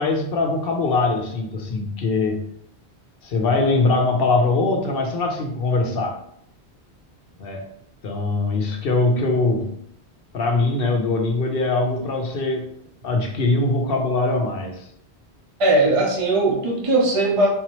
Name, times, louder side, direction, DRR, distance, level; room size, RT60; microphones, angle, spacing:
voice 1, 0.0-2.4 3.2-6.2 7.4-7.7 8.0-9.8 10.3-12.7 13.0-14.9, left 3 dB, 65° left, 3 dB, 0.8 m, -22 dB
voice 2, 15.6-17.5, right 2 dB, 30° right, -2 dB, 0.8 m, -19 dB
4.1 x 2.9 x 3.0 m, 0.70 s
omnidirectional pair, 1.1 m